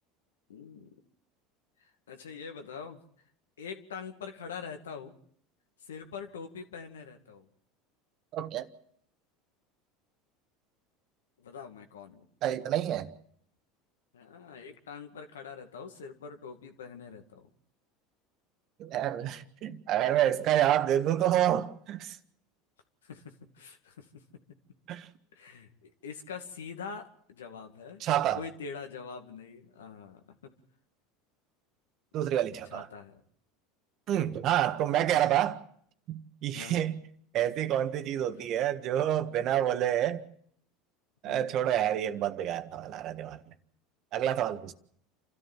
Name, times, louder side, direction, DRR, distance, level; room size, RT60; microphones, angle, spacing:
voice 1, 0.5-1.0 2.1-3.0 3.6-5.1 5.8-7.5 11.4-12.3 14.1-17.5 23.0-24.2 25.3-28.0 28.3-30.2 32.7-33.2 35.2-35.3 36.5-36.8 41.2-41.6, left 6 dB, 90° left, 2.2 m, -44 dB
voice 2, 8.3-8.7 12.4-13.1 18.8-22.2 24.9-25.1 28.0-28.4 32.1-32.9 34.1-35.6 36.1-37.1 37.3-40.2 41.2-43.4 44.1-44.7, right 11 dB, 55° right, 1.6 m, -28 dB
28.5 x 13.5 x 7.5 m
hypercardioid pair, 90°, 0 cm